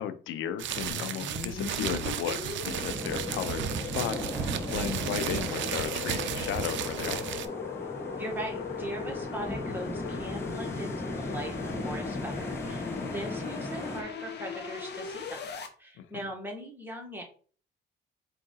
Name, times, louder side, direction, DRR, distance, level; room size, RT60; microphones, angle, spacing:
voice 1, 0.0-7.3 13.0-13.2 16.0-16.3, left 10 dB, 85° left, 11 dB, 0.5 m, -35 dB
sound 1, 0.6-7.5, right 10 dB, 70° right, 0.5 m, -34 dB
sound 2, 0.9-15.7, left 6 dB, 60° left, 0.9 m, -39 dB
sound 3, 2.6-14.0, left 1 dB, 10° left, 1.1 m, -37 dB
voice 2, 8.1-17.2, right 1 dB, 10° right, 0 dB, 1.6 m, -40 dB
4.6 x 2.6 x 3.9 m, 0.41 s
cardioid pair, 90°, 20 cm